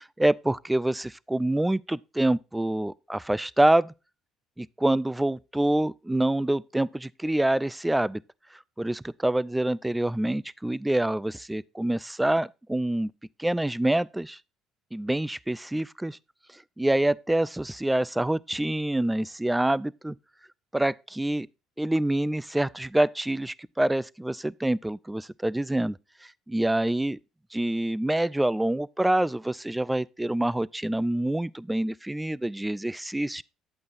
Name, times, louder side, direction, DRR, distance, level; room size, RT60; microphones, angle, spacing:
voice 1, 0.0-3.9 4.6-8.2 8.8-13.1 13.4-14.4 14.9-16.2 16.8-20.2 20.7-21.5 21.8-27.2 27.5-33.4, right 1 dB, 10° right, 0.3 m, -26 dB
9.7 x 8.5 x 2.6 m
hypercardioid pair, 60°, 0 cm